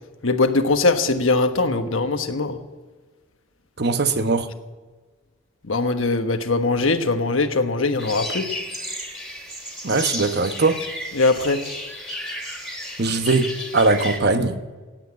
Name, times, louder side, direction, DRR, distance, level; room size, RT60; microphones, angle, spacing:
voice 1, 0.2-2.6 5.6-8.4 11.2-11.6, left 3 dB, 85° left, 7 dB, 1.3 m, -21 dB
voice 2, 3.8-4.5 9.8-10.8 13.0-14.6, right 3 dB, 55° right, 9 dB, 1.1 m, -20 dB
sound 1, 8.0-14.2, left 1 dB, ahead, 3.0 m, -33 dB
17.5 x 8.1 x 9.3 m, 1.4 s
head